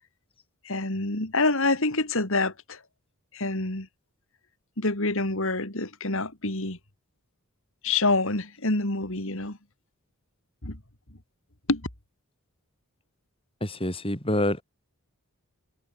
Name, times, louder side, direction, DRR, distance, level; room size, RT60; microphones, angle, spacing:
voice 1, 0.6-2.8 3.3-3.9 4.8-6.8 7.8-9.6 10.6-10.8 11.7-11.8, left 2 dB, 60° left, 3.4 m, -26 dB
voice 2, 13.6-14.6, left 1 dB, 25° left, 6.9 m, -26 dB
head